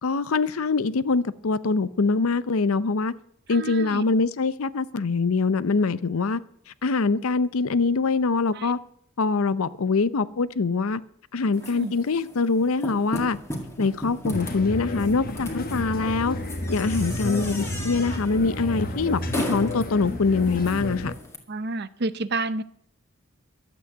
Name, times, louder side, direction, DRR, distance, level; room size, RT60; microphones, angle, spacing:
voice 1, 0.0-3.1 3.5-6.4 6.8-8.8 9.2-11.0 11.3-13.4 13.8-16.4 16.7-21.1, left 4 dB, 80° left, 0.6 m, -24 dB
voice 2, 3.5-4.0 8.5-8.7 11.6-11.9 18.1-18.2 21.5-22.6, right 2 dB, 50° right, 0.6 m, -30 dB
sound 1, 11.5-21.4, left 1 dB, 15° left, 2.0 m, -37 dB
sound 2, 14.3-21.1, left 1 dB, 40° left, 1.1 m, -31 dB
12.5 x 8.3 x 8.0 m
head